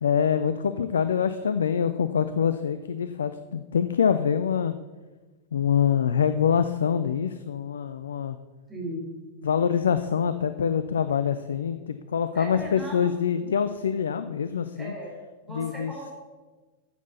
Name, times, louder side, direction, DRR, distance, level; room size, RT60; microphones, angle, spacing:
voice 1, 0.0-4.7 5.5-8.4 9.4-14.9 15.5-15.9, left 7 dB, 65° left, 11 dB, 0.4 m, -25 dB
voice 2, 8.7-9.1 12.3-13.1 14.8-15.2 15.5-16.1, right 1 dB, 15° right, -4 dB, 4.0 m, -37 dB
9.2 x 7.3 x 7.0 m, 1.3 s
figure-of-eight pair, 90°, 0 cm